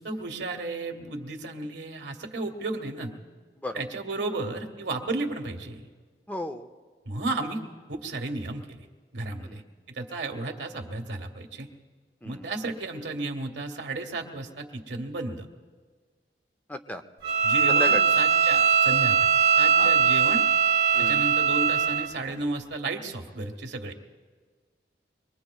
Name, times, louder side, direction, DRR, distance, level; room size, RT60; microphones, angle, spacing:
voice 1, 0.0-3.1 3.7-5.8 7.0-7.6 7.9-8.8 9.1-9.6 9.9-11.7 12.2-15.5 17.4-19.3 19.6-20.4 21.0-23.9, right 2 dB, 90° right, 4 dB, 1.5 m, -33 dB
voice 2, 6.3-6.7 9.4-9.6 12.2-12.5 16.7-17.0 17.7-18.1 19.8-19.9 20.9-21.3, left 1 dB, 10° left, 7 dB, 0.6 m, -34 dB
Bowed string instrument, 17.2-22.1, right 6 dB, 70° right, 0.8 m, -21 dB
24.5 x 21.5 x 2.4 m, 1.5 s
head